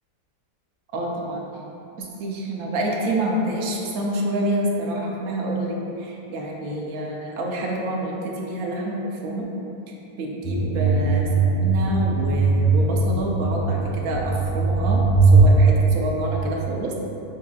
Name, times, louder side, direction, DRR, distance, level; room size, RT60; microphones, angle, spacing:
voice 1, 0.9-1.4 2.0-9.5 10.2-17.0, right 1 dB, 70° right, -1 dB, 1.0 m, -27 dB
sound 1, 10.4-15.5, right 3 dB, 35° left, 0.9 m, -20 dB
6.3 x 2.8 x 2.3 m, 2.8 s
omnidirectional pair, 1.7 m